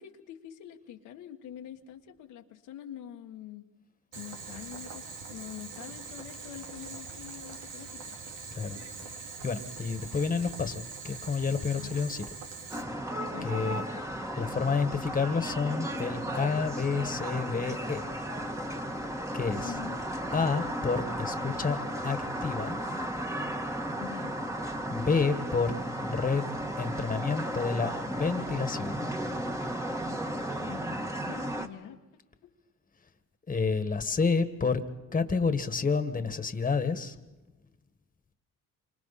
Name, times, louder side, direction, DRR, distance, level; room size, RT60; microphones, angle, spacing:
voice 1, 0.0-3.7 4.1-8.2 11.8-12.1 13.2-14.1 19.6-20.0 24.0-24.4 30.6-32.0, left 10 dB, 85° left, 3 dB, 1.5 m, -45 dB
Boiling, 4.1-12.8, right 4 dB, 85° right, 2.7 m, -43 dB
voice 2, 9.4-12.2 13.4-13.9 14.4-18.1 19.3-19.8 20.3-22.8 24.9-26.4 26.8-29.1 33.5-34.8 35.1-37.2, left 5 dB, 25° left, 9 dB, 1.7 m, -29 dB
sound 1, 12.7-31.7, right 1 dB, 10° right, 1.7 m, -34 dB
27.5 x 25.5 x 4.2 m, 1.0 s
cardioid pair, 90°, 30 cm